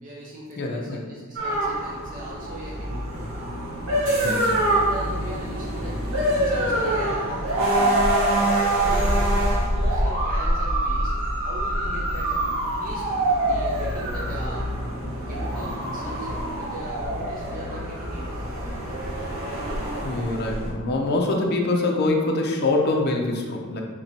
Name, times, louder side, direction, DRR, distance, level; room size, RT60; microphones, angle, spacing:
voice 1, 0.0-3.4 4.8-6.0 6.4-8.0 8.4-11.1 11.4-12.4 12.8-13.1 13.4-14.7 15.3-18.5, equal, 40° right, -4 dB, 0.6 m, -39 dB
voice 2, 0.6-1.0 4.2-4.6 20.0-23.8, left 2 dB, 50° left, 1 dB, 0.6 m, -24 dB
sound 1, 1.4-20.7, right 1 dB, 75° right, 1.1 m, -25 dB
5.6 x 2.9 x 2.7 m, 1.4 s
head